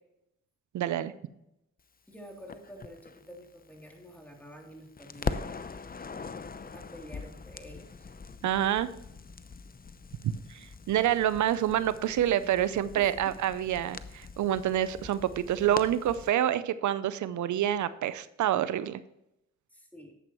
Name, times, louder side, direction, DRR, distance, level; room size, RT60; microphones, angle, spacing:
voice 1, 0.7-1.1 8.4-8.9 10.5-19.0, right 11 dB, 85° right, 15 dB, 0.6 m, -27 dB
voice 2, 2.1-5.8 6.7-8.1 12.9-13.4 19.7-20.1, equal, 5° left, 0 dB, 3.1 m, -49 dB
Crackle, 2.5-4.6 5.0-16.3, left 4 dB, 30° left, 0.7 m, -42 dB
11.0 x 8.0 x 3.0 m, 0.84 s
cardioid pair, 55°, 29 cm